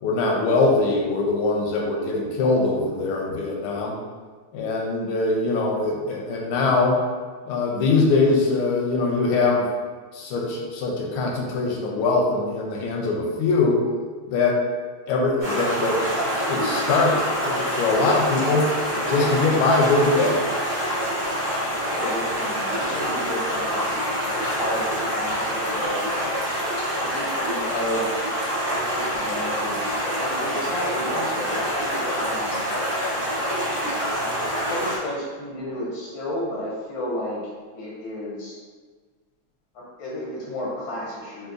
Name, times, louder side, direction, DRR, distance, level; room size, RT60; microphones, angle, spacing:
voice 1, 0.0-3.9 4.5-7.0 7.5-9.6 10.1-13.8 14.3-14.6 15.1-16.1 16.5-17.1 17.4-18.7 19.1-20.4, left 3 dB, 85° left, -1 dB, 1.5 m, -22 dB
Stream, 15.4-35.0, equal, 85° right, 0.4 m, -26 dB
voice 2, 21.8-24.0 24.4-26.1 27.0-28.1 28.9-32.6 34.6-37.4 37.7-38.6 39.7-41.5, left 1 dB, 65° left, -5 dB, 0.9 m, -32 dB
3.8 x 2.6 x 2.5 m, 1.5 s
omnidirectional pair, 2.3 m